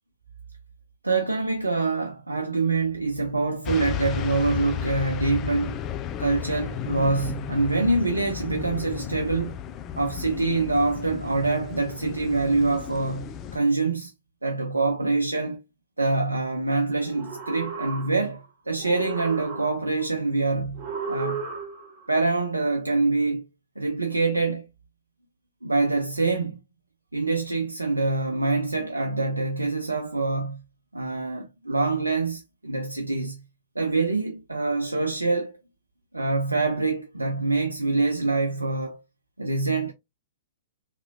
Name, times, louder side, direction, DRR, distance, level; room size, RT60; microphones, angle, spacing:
voice 1, 1.0-5.8 6.2-9.5 10.0-14.1 14.4-15.6 16.0-21.5 22.1-23.4 23.8-24.7 25.6-26.6 27.1-30.6 30.9-33.4 33.8-35.6 36.1-39.0 39.4-39.9, right 3 dB, 85° right, 0.5 m, -25 dB
sound 1, 3.6-13.6, left 9 dB, 30° left, 0.3 m, -34 dB
sound 2, 17.0-18.4 18.8-20.0 20.8-22.1, right 5 dB, 35° right, 1.5 m, -34 dB
3.6 x 3.0 x 2.4 m
figure-of-eight pair, 110°, 0 cm